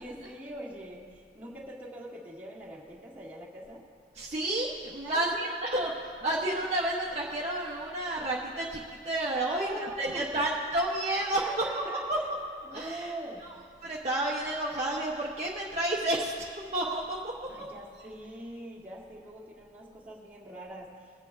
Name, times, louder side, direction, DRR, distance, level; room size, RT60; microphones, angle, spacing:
voice 1, 0.0-3.8 5.0-5.5 9.5-10.3 11.4-12.3 12.6-13.5 17.5-20.9, right 1 dB, 10° right, -7 dB, 1.9 m, -42 dB
voice 2, 4.1-5.9 6.2-11.8 12.1-12.2 12.7-13.1 13.4-13.5 13.8-17.7, right 1 dB, 40° right, -4 dB, 0.9 m, -31 dB
23.0 x 8.2 x 2.6 m, 2.3 s
head